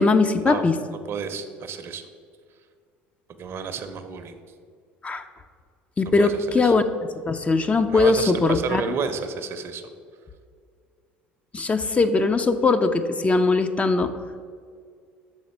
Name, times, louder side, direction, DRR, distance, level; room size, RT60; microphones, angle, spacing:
voice 1, 0.0-0.8 5.0-5.2 6.0-6.8 7.3-8.8 11.5-14.1, left 3 dB, 25° left, 8 dB, 0.4 m, -20 dB
voice 2, 0.9-2.1 3.4-4.4 6.2-6.7 7.9-9.8, right 6 dB, 50° right, 9 dB, 0.6 m, -31 dB
6.3 x 4.0 x 5.2 m, 2.1 s
hypercardioid pair, 65°, 6 cm